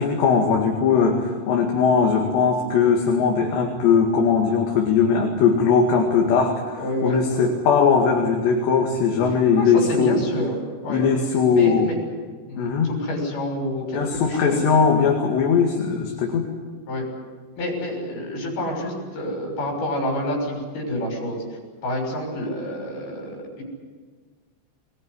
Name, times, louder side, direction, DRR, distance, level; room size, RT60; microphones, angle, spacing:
voice 1, 0.0-10.2 10.9-11.9 12.6-12.9 13.9-16.5, left 6 dB, 70° left, 0 dB, 4.3 m, -19 dB
voice 2, 6.8-7.5 9.5-10.6 10.8-11.0 11.5-12.0 12.5-12.7 13.0-14.6 16.9-17.1 17.6-21.4 21.8-23.6, left 1 dB, 55° left, 1 dB, 8.1 m, -28 dB
22.0 x 21.0 x 9.8 m, 1.5 s
omnidirectional pair, 5.2 m